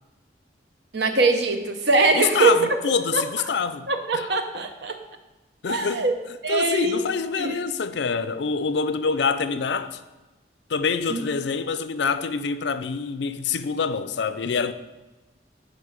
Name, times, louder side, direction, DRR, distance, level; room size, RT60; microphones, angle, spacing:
voice 1, 0.9-2.6 3.1-3.2 3.9-5.0 5.7-6.1 6.4-7.0 7.4-7.6 11.1-11.2, right 3 dB, 75° right, 0.8 m, -22 dB
voice 2, 2.2-4.3 5.6-6.1 6.5-10.0 10.7-14.7, left 5 dB, 80° left, 0.5 m, -26 dB
10.0 x 4.4 x 5.0 m
head